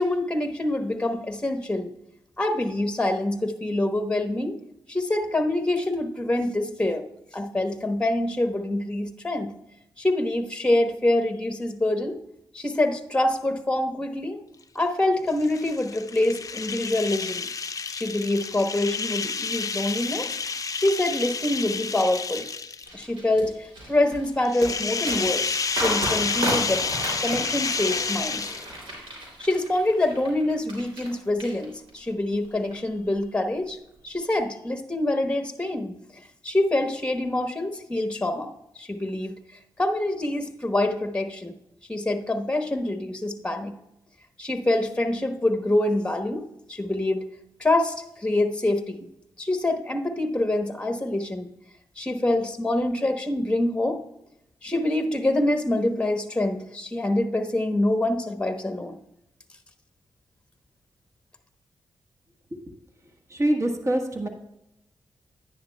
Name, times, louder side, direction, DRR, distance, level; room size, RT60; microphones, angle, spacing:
voice 1, 0.0-1.9 2.4-4.6 4.9-7.1 7.3-9.5 10.0-12.2 12.5-14.4 14.7-17.5 17.9-20.3 20.7-22.5 22.9-25.4 25.7-26.9 27.2-28.5 29.4-33.8 34.0-35.9 36.4-38.5 38.7-39.3 39.8-41.5 41.9-43.7 44.4-47.2 47.6-49.1 49.4-51.5 52.0-54.0 54.6-59.0, left 1 dB, 10° left, 6 dB, 1.2 m, -25 dB
sound 1, 15.3-23.0 24.5-28.9, left 5 dB, 40° left, 0.5 m, -30 dB
sound 2, 22.8-31.1 31.4-32.0 32.4-32.7, right 1 dB, 90° right, 3.1 m, -33 dB
voice 2, 63.3-64.3, right 1 dB, 35° right, 3 dB, 1.4 m, -25 dB
10.0 x 10.0 x 2.3 m, 0.83 s
supercardioid pair, 45°, 9 cm